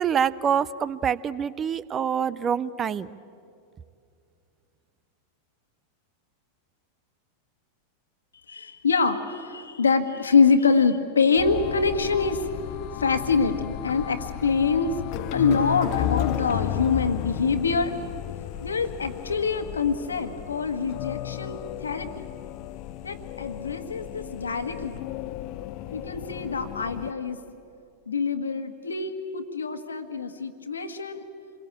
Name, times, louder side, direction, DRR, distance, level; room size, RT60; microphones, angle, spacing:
voice 1, 0.0-3.1, right 8 dB, 25° right, 19 dB, 0.6 m, -26 dB
voice 2, 8.5-12.5 13.0-18.0 18.6-22.3 23.0-25.0 25.9-27.4 28.1-31.2, left 5 dB, 75° left, 8 dB, 1.6 m, -25 dB
sound 1, 11.4-27.1, left 13 dB, 45° left, 0.7 m, -34 dB
28.0 x 22.0 x 8.6 m, 2.5 s
figure-of-eight pair, 90°, 0 cm